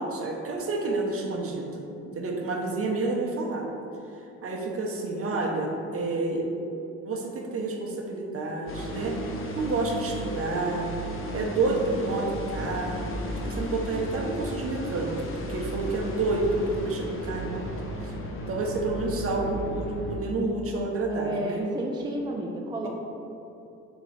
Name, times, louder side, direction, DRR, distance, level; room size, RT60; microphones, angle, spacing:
voice 1, 0.0-3.7 4.4-6.5 7.0-9.2 9.5-10.9 11.3-15.1 15.5-17.6 18.0-18.1 18.5-21.6, right 3 dB, 50° right, 0 dB, 0.8 m, -29 dB
sound 1, 8.7-20.2, equal, 45° left, 0.7 m, -34 dB
voice 2, 21.1-22.9, right 1 dB, 15° right, -1 dB, 0.4 m, -31 dB
4.2 x 3.0 x 4.0 m, 2.8 s
cardioid pair, 90°, 30 cm